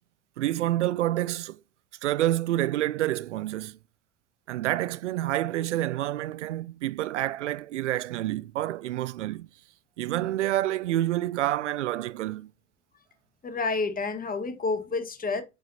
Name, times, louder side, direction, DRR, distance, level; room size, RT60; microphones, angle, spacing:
voice 1, 0.4-1.6 2.0-3.8 4.5-9.5 10.0-12.5, right 14 dB, 80° right, 0.5 m, -28 dB
voice 2, 13.4-15.4, left 3 dB, 25° left, 1.4 m, -29 dB
7.9 x 4.9 x 2.7 m
figure-of-eight pair, 70°, 35 cm